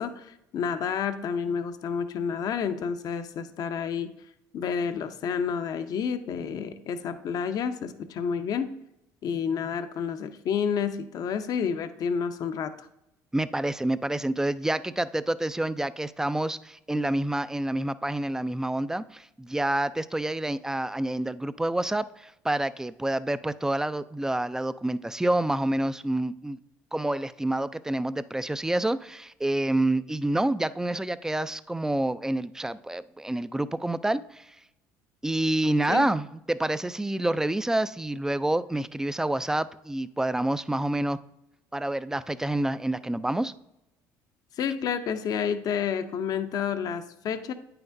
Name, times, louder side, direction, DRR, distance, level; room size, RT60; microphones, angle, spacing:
voice 1, 0.0-4.1 4.5-8.7 9.2-12.9 35.9-36.1 44.6-47.5, left 7 dB, 55° left, 9 dB, 0.6 m, -30 dB
voice 2, 13.3-26.6 26.9-34.6 35.2-41.2 41.7-43.5, right 1 dB, 5° right, 15 dB, 0.3 m, -28 dB
8.9 x 5.8 x 2.6 m, 0.84 s
supercardioid pair, 80°, 8 cm